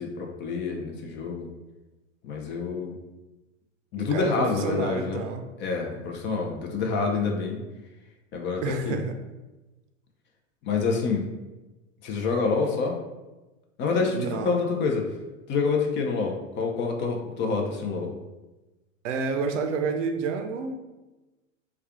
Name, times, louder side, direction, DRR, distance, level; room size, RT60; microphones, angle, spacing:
voice 1, 0.0-1.5 2.2-2.9 3.9-5.2 5.6-7.6 8.3-9.0 10.6-11.3 12.0-13.0 13.8-15.1 15.5-18.1, left 4 dB, 30° left, 2 dB, 0.5 m, -27 dB
voice 2, 4.0-5.4 8.6-9.2 14.1-14.5 19.0-20.8, right 4 dB, 65° right, 6 dB, 0.6 m, -29 dB
3.3 x 2.3 x 3.6 m, 1.1 s
hypercardioid pair, 105°, 39 cm